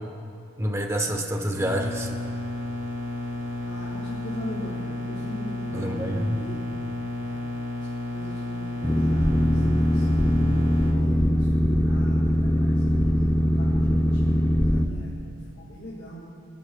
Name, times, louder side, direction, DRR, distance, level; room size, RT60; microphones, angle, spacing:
voice 1, 0.6-2.1 5.7-6.4, right 1 dB, 15° right, 3 dB, 1.0 m, -27 dB
sound 1, 1.5-10.9, left 1 dB, 90° right, 2.5 m, -32 dB
voice 2, 3.6-6.6 7.2-7.5 8.1-10.3 10.8-16.2, equal, 60° left, -5 dB, 2.0 m, -40 dB
Boat Water vehicle, 8.8-14.9, equal, 10° left, 0.5 m, -21 dB
24.0 x 11.5 x 2.3 m, 2.3 s
head